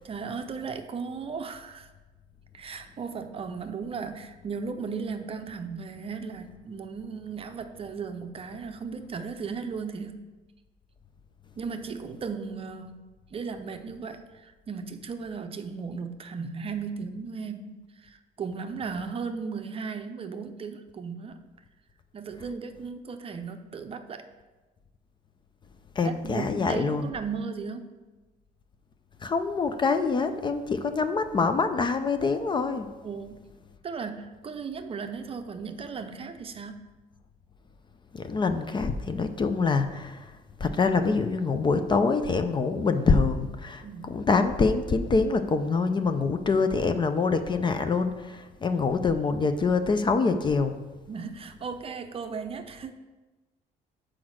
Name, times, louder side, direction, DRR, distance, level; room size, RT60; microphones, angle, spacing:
voice 1, 0.0-1.9 2.5-10.2 11.6-21.4 22.1-24.3 26.0-27.9 33.0-33.5 33.8-36.9 43.8-44.2 51.1-52.9, right 5 dB, 35° right, 7 dB, 0.6 m, -36 dB
voice 2, 26.0-27.1 29.2-32.9 38.1-50.7, left 4 dB, 25° left, 9 dB, 0.5 m, -25 dB
6.1 x 4.8 x 6.2 m, 1.2 s
cardioid pair, 110°, 17 cm